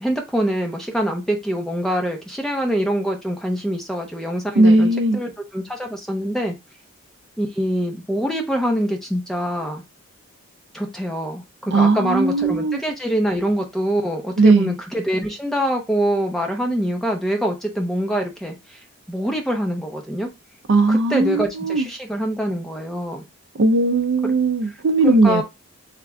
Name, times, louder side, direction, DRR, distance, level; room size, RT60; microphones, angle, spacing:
voice 1, 0.0-6.5 7.4-9.8 10.7-18.8 19.1-20.3 20.9-23.2 24.2-24.3 25.0-25.4, equal, ahead, 0.8 m, -24 dB
voice 2, 4.6-5.2 11.7-12.8 14.4-14.8 20.7-21.9 23.5-25.4, right 2 dB, 55° right, 0.5 m, -17 dB
3.6 x 3.3 x 3.5 m
head